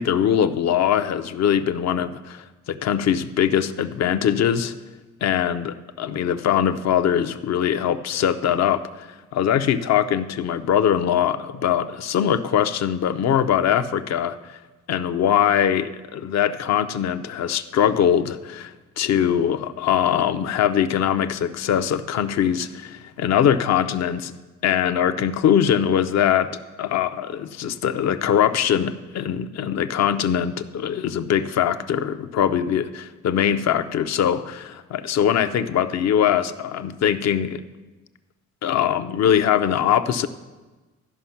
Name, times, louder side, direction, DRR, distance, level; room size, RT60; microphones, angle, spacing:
voice 1, 0.0-4.7 5.2-14.6 14.9-24.3 24.6-26.5 26.8-37.6 38.6-40.3, left 9 dB, 60° left, 11 dB, 0.6 m, -22 dB
13.0 x 5.4 x 5.8 m, 1.2 s
cardioid pair, 90°, 30 cm